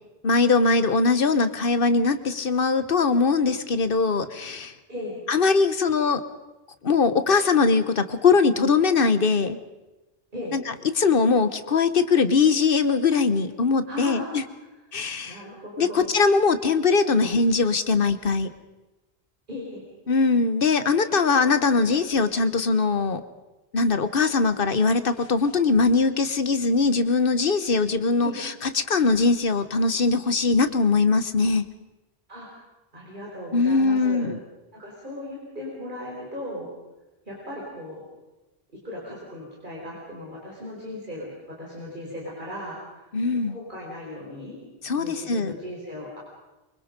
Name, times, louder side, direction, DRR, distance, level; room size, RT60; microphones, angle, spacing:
voice 1, 0.2-4.7 5.3-6.2 6.8-9.6 10.5-10.6 10.9-14.4 14.9-15.4 15.8-18.5 20.1-23.2 23.7-31.6 33.5-34.4 43.1-43.6 44.8-45.5, left 4 dB, 60° left, 11 dB, 1.3 m, -21 dB
voice 2, 13.9-14.5 15.2-16.1 19.5-19.8 28.2-28.4 32.3-32.5 32.9-34.3 34.7-36.7 37.3-38.0 38.8-43.1 43.5-44.6 44.9-46.2, left 1 dB, 50° right, -4 dB, 4.9 m, -37 dB
24.0 x 24.0 x 5.3 m, 1.1 s
omnidirectional pair, 1.0 m